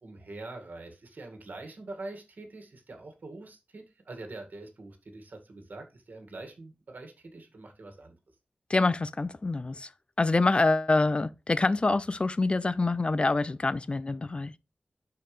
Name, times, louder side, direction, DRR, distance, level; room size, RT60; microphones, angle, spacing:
voice 1, 0.0-8.2, right 2 dB, 70° right, 2.0 m, -44 dB
voice 2, 8.7-9.9 10.2-14.5, left 3 dB, 35° left, 0.4 m, -26 dB
11.0 x 4.7 x 3.3 m
wide cardioid pair, 100°, 3 cm